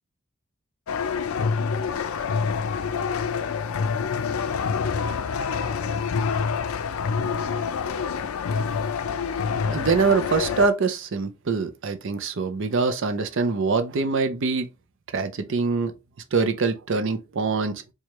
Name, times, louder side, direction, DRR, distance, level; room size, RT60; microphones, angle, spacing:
sound 1, 0.9-10.7, left 5 dB, 90° left, 0.4 m, -26 dB
voice 1, 9.7-14.7 15.1-15.9 16.3-17.9, right 4 dB, 60° right, 0.6 m, -24 dB
4.6 x 2.3 x 3.0 m
head